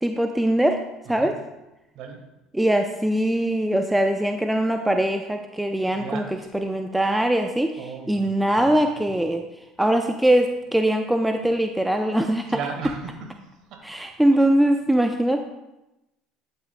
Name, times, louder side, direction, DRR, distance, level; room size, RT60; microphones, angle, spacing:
voice 1, 0.0-0.8 1.1-1.4 2.5-9.4 9.8-12.6 13.8-15.4, right 1 dB, 5° right, 5 dB, 0.5 m, -22 dB
voice 2, 5.9-6.4 7.8-8.2 12.5-13.1 13.7-13.8, right 5 dB, 65° right, 4 dB, 1.4 m, -34 dB
11.0 x 5.7 x 2.2 m, 0.97 s
supercardioid pair, 80°, 0 cm